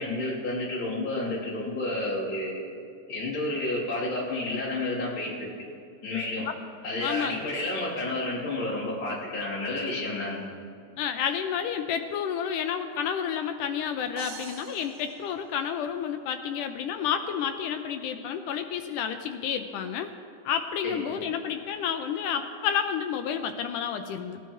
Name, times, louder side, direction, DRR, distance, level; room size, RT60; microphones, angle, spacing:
voice 1, 0.0-2.6 3.1-5.5 6.0-6.5 6.8-10.5 20.8-21.0, left 2 dB, 35° left, -8 dB, 3.7 m, -30 dB
voice 2, 7.0-7.5 11.0-20.1 20.5-24.4, left 8 dB, 80° left, 7 dB, 1.9 m, -30 dB
sound 1, 14.2-16.1, right 6 dB, 65° right, 1.9 m, -45 dB
19.5 x 11.5 x 3.1 m, 2.5 s
omnidirectional pair, 4.0 m